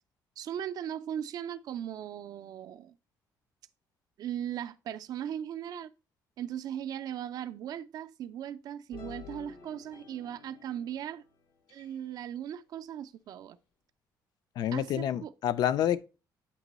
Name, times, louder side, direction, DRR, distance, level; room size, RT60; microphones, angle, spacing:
voice 1, 0.4-2.9 4.2-5.9 6.4-11.2 11.7-13.6 14.7-15.3, right 10 dB, 60° right, 0.3 m, -38 dB
sound 1, 8.9-11.3 11.7-12.0, left 6 dB, 85° left, 0.9 m, -50 dB
voice 2, 14.6-16.0, left 10 dB, 65° left, 0.4 m, -28 dB
8.1 x 3.0 x 4.0 m
cardioid pair, 130°, 8 cm